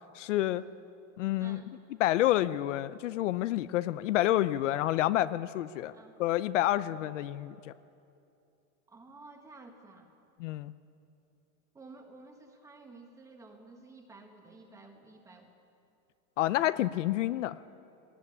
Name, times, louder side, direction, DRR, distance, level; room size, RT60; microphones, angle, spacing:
voice 1, 0.1-0.6 1.2-1.6 2.0-5.9 6.2-7.7 10.4-10.7 16.4-17.6, left 14 dB, 65° left, 14 dB, 0.7 m, -28 dB
voice 2, 1.4-1.7 5.9-6.2 8.9-10.1 11.7-15.5, right 3 dB, 10° right, 4 dB, 1.5 m, -52 dB
20.0 x 18.5 x 9.8 m, 2.7 s
supercardioid pair, 175°, 41 cm